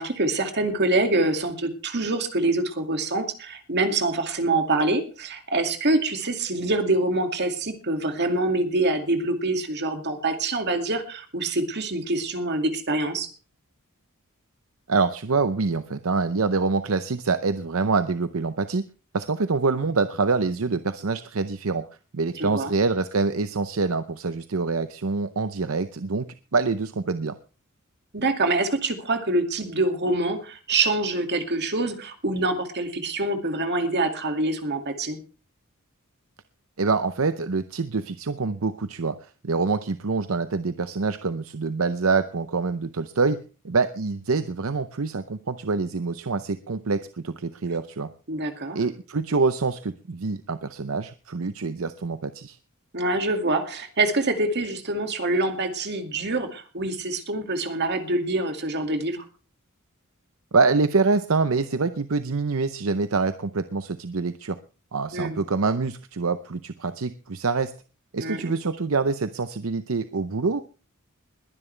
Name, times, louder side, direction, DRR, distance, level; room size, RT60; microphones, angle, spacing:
voice 1, 0.0-13.3 22.4-22.7 28.1-35.2 48.3-48.8 52.9-59.2 65.1-65.4 68.2-68.6, right 2 dB, 50° right, 6 dB, 2.3 m, -25 dB
voice 2, 14.9-18.9 19.1-21.9 22.1-26.3 26.5-27.4 36.8-39.2 39.4-43.4 43.6-48.1 48.7-52.6 60.5-64.6 64.9-67.7 68.1-70.6, right 4 dB, 70° right, 11 dB, 0.7 m, -25 dB
21.0 x 11.0 x 3.3 m, 0.35 s
head